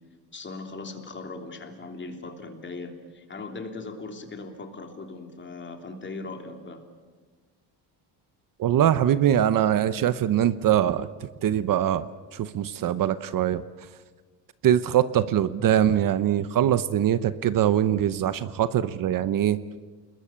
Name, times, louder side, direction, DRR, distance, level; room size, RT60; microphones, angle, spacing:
voice 1, 0.3-6.8, left 3 dB, 25° left, 5 dB, 3.3 m, -39 dB
voice 2, 8.6-11.1 11.4-13.6 14.6-19.6, right 10 dB, 50° right, 14 dB, 0.9 m, -22 dB
29.5 x 21.5 x 8.7 m, 1.4 s
cardioid pair, 145°, 42 cm